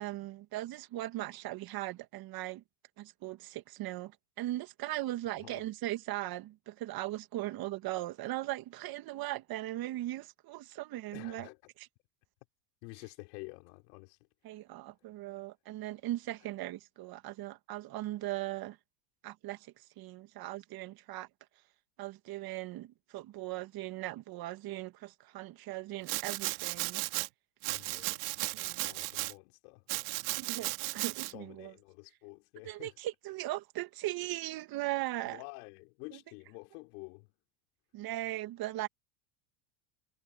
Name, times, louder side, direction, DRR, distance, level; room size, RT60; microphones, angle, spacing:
voice 1, 0.0-2.6 3.0-11.5 14.4-18.8 19.2-21.3 22.0-27.0 28.5-28.9 30.4-31.7 32.6-35.4 36.1-36.2 37.9-38.9, right 16 dB, 45° right, 2.0 m, -39 dB
voice 2, 11.1-11.6 12.8-14.2 14.5-14.6 27.7-28.3 28.6-29.9 31.3-32.9 35.3-37.3, left 30 dB, 70° left, 3.9 m, -49 dB
Domestic sounds home sounds, 26.1-27.3 27.6-29.3 29.9-31.3, right 27 dB, 65° right, 2.6 m, -35 dB
supercardioid pair, 110°, 48 cm